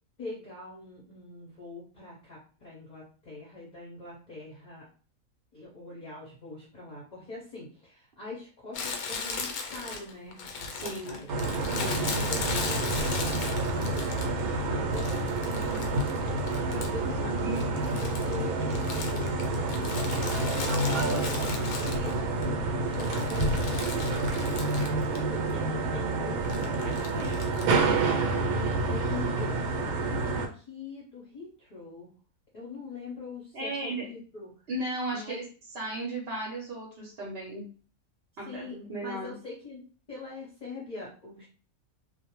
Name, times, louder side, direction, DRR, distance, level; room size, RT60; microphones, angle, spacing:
voice 1, 0.2-4.9 5.5-16.3 16.6-21.3 21.8-22.6 22.9-24.4 25.3-32.1 32.5-34.5 35.1-35.5 38.4-39.8 40.1-41.5, left 3 dB, 40° left, -4 dB, 0.7 m, -43 dB
Crumpling crinkling, 8.7-14.5 14.9-17.1 17.4-22.4 22.8-25.2 25.5-25.6 26.4-27.8, left 5 dB, 85° left, 1.1 m, -37 dB
voice 2, 10.8-11.2 11.8-12.1 33.5-34.1 34.7-35.4 35.7-37.6 38.4-39.3, right 2 dB, 55° right, -3 dB, 0.9 m, -35 dB
sound 1, 11.3-30.5, right 2 dB, 80° right, 1.0 m, -28 dB
2.5 x 2.0 x 2.9 m, 0.39 s
omnidirectional pair, 1.5 m